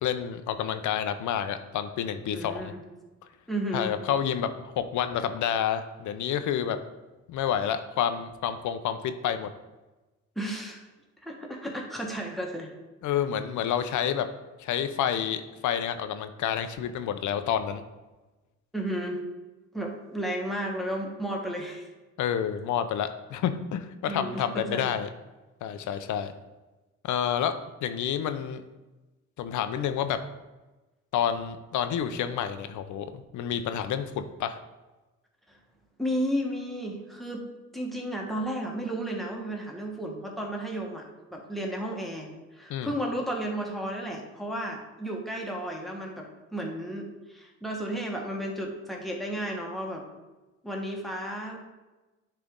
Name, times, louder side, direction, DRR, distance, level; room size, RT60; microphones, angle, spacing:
voice 1, 0.0-2.7 3.7-6.8 7.3-9.5 13.0-14.3 14.6-17.8 22.2-25.1 25.6-26.3 27.0-28.6 29.4-30.2 31.1-34.6 42.7-42.9, left 9 dB, 75° left, 10 dB, 0.6 m, -29 dB
voice 2, 2.3-2.8 3.5-4.0 10.3-10.8 11.2-12.7 18.7-19.2 19.7-21.9 24.1-24.9 35.5-35.6 36.0-37.5 37.7-41.0 41.3-50.0 50.6-51.6, right 1 dB, ahead, -1 dB, 1.3 m, -33 dB
10.0 x 3.4 x 3.7 m, 1.1 s
cardioid pair, 90°, 30 cm